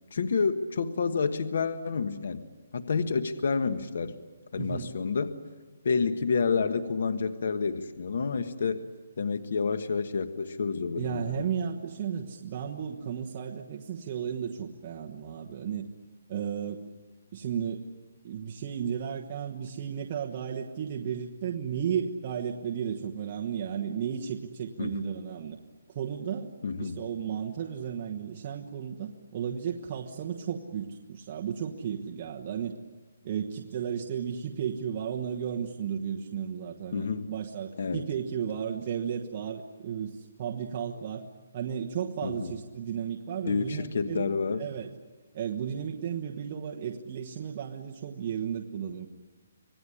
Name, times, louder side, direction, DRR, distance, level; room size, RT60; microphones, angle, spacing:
voice 1, 0.1-2.4 2.7-4.2 4.5-5.3 5.8-8.8 9.2-11.4 24.8-25.1 26.6-27.0 36.9-37.3 37.8-38.0 42.2-42.5 43.4-44.6, left 5 dB, 60° left, 10 dB, 1.3 m, -29 dB
voice 2, 11.0-15.9 16.3-16.8 17.3-17.8 18.2-25.6 25.9-32.8 33.2-41.3 41.5-44.3 44.6-44.9 45.3-49.1, right 8 dB, 30° right, 0 dB, 1.2 m, -34 dB
26.0 x 18.5 x 9.9 m, 1.4 s
hypercardioid pair, 170°, 0 cm